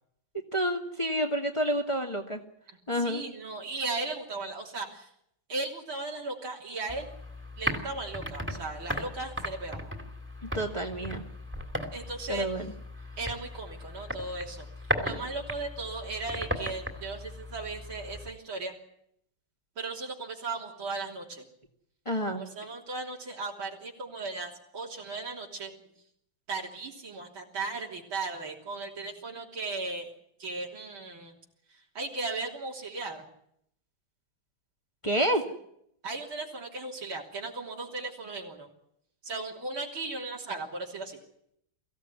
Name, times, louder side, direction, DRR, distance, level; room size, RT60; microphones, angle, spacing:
voice 1, 0.5-2.4 2.9-3.2 10.5-11.3 12.3-12.7 22.1-22.4 35.0-35.4, equal, 15° left, 2 dB, 1.9 m, -29 dB
voice 2, 2.9-5.1 5.5-7.1 7.6-9.9 11.9-12.5 13.2-18.7 19.8-21.5 22.3-25.7 26.5-30.1 30.4-31.4 31.7-33.3 36.0-38.7 39.2-41.2, right 3 dB, 75° right, -1 dB, 4.1 m, -37 dB
sound 1, 6.9-18.3, equal, 5° right, 2.5 m, -37 dB
23.0 x 16.0 x 9.7 m, 0.73 s
omnidirectional pair, 2.2 m